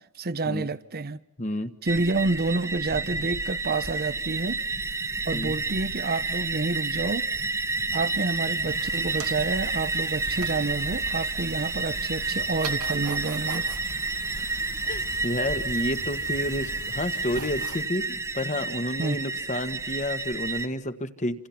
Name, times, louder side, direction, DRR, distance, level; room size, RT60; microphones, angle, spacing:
voice 1, 0.0-1.2 1.8-4.6 5.2-7.3 7.9-13.7 19.0-19.2, right 3 dB, 45° right, 0.8 m, -29 dB
voice 2, 1.4-1.7 5.3-5.5 14.4-14.6 14.9-21.5, left 1 dB, 35° left, 1.5 m, -30 dB
sound 1, 1.9-20.7, right 3 dB, 15° right, 1.1 m, -30 dB
sound 2, 8.7-17.8, right 3 dB, 80° right, 2.0 m, -40 dB
28.5 x 27.5 x 5.9 m
head